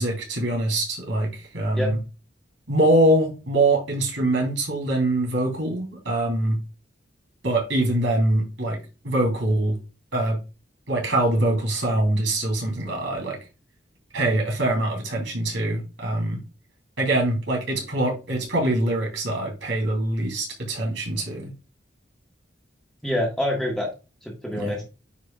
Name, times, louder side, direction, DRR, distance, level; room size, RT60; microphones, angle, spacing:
voice 1, 0.0-2.0 2.7-6.6 7.4-8.8 9.0-9.8 10.1-10.4 10.9-13.4 14.1-16.4 17.0-21.5 24.5-24.8, right 1 dB, 85° right, 3.3 m, -23 dB
voice 2, 23.0-23.9 24.2-24.8, left 1 dB, 5° left, 1.7 m, -26 dB
9.4 x 4.7 x 2.4 m
head